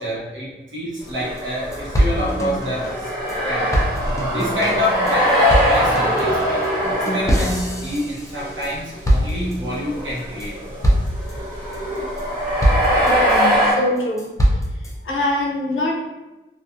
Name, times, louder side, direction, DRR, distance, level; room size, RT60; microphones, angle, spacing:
voice 1, 0.0-3.1 3.4-3.9 4.3-6.6 7.1-10.6, equal, 65° right, -7 dB, 1.0 m, -27 dB
sound 1, 1.1-1.2 1.4-1.5 1.7-3.4 3.7-8.7 9.0-9.8 10.2-10.5 10.8-11.3 11.7-12.2 12.6-13.5 14.0-14.9, equal, 15° left, 0.4 m, -22 dB
sound 2, 1.1-7.8 8.4-8.7 8.9-9.0 9.7-13.7, equal, 20° right, 1.0 m, -21 dB
voice 2, 13.0-14.3 15.0-16.0, left 2 dB, 70° left, 0 dB, 0.5 m, -23 dB
2.6 x 2.4 x 2.5 m, 1.1 s
wide cardioid pair, 105°, 21 cm